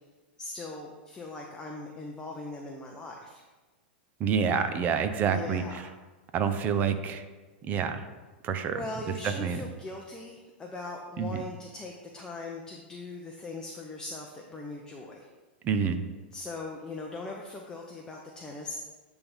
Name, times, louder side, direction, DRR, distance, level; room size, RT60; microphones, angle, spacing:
voice 1, 0.4-3.4 5.2-5.9 6.6-6.7 8.7-15.3 16.3-18.8, left 2 dB, 15° left, 0 dB, 0.7 m, -40 dB
voice 2, 4.2-5.6 6.3-7.2 7.6-8.0 8.4-8.8 9.2-9.6 11.2-11.4 15.6-16.0, right 7 dB, 30° right, 9 dB, 0.6 m, -27 dB
9.2 x 3.5 x 5.5 m, 1.3 s
hypercardioid pair, 135°, 6 cm